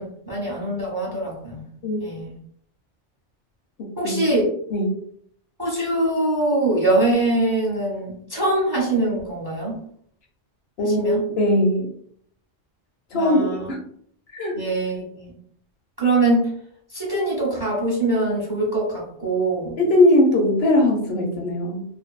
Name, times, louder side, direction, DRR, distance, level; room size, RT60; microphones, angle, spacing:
voice 1, 0.0-1.6 2.0-2.3 4.0-4.5 5.6-9.7 10.8-11.2 13.1-13.7 14.5-15.3 16.0-16.5 16.9-19.8, right 2 dB, 25° right, -4 dB, 0.6 m, -23 dB
voice 2, 3.8-4.3 4.7-5.0 10.8-11.9 13.1-13.8 14.3-14.6 19.8-21.8, left 1 dB, 65° left, 1 dB, 0.8 m, -20 dB
2.5 x 2.3 x 2.3 m, 0.64 s
omnidirectional pair, 1.2 m